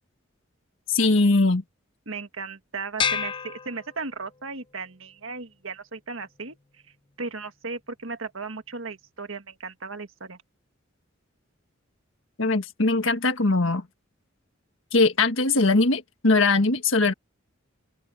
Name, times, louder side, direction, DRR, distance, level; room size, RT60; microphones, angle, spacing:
voice 1, 0.9-1.6 12.4-13.9 14.9-17.1, left 3 dB, 70° left, 1.6 m, -21 dB
voice 2, 2.1-6.6 7.2-10.4, right 4 dB, 75° right, 1.8 m, -36 dB
sound 1, 3.0-4.5, left 7 dB, 25° left, 0.5 m, -29 dB
open air
head